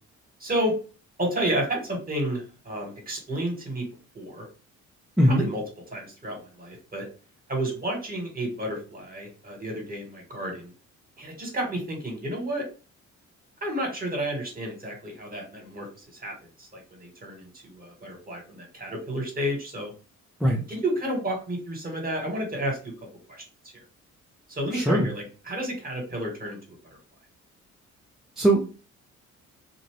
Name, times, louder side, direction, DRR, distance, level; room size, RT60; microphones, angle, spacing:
voice 1, 0.4-0.7 1.2-3.8 4.1-4.5 5.2-5.6 5.9-7.1 7.5-10.7 11.2-12.6 13.6-19.9 20.7-22.9 23.3-23.4 24.5-26.8, right 1 dB, 30° right, 1 dB, 1.4 m, -31 dB
voice 2, 24.7-25.1 28.4-28.6, right 1 dB, ahead, -3 dB, 0.6 m, -20 dB
2.6 x 2.6 x 3.1 m, 0.35 s
cardioid pair, 90°, 30 cm